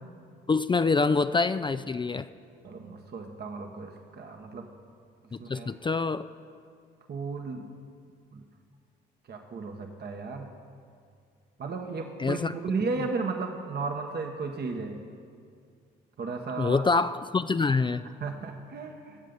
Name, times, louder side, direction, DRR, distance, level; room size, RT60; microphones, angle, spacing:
voice 1, 0.5-2.3 5.5-6.2 12.2-12.5 16.6-18.0, left 4 dB, 25° left, 11 dB, 0.4 m, -25 dB
voice 2, 2.6-4.7 5.4-5.7 7.1-7.7 8.3-8.4 9.3-10.5 11.6-15.0 16.2-16.8 18.0-19.2, right 4 dB, 50° right, 3 dB, 1.3 m, -34 dB
19.5 x 7.6 x 5.4 m, 2.3 s
supercardioid pair, 60°, 21 cm